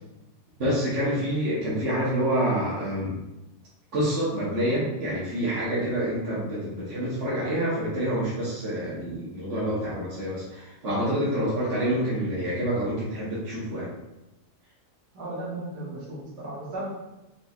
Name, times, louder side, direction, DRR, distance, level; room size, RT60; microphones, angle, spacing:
voice 1, 0.6-3.2 3.9-13.9, equal, 50° right, -8 dB, 1.2 m, -27 dB
voice 2, 15.1-16.8, right 2 dB, 90° right, -6 dB, 1.9 m, -35 dB
4.4 x 4.1 x 2.3 m, 0.96 s
omnidirectional pair, 1.7 m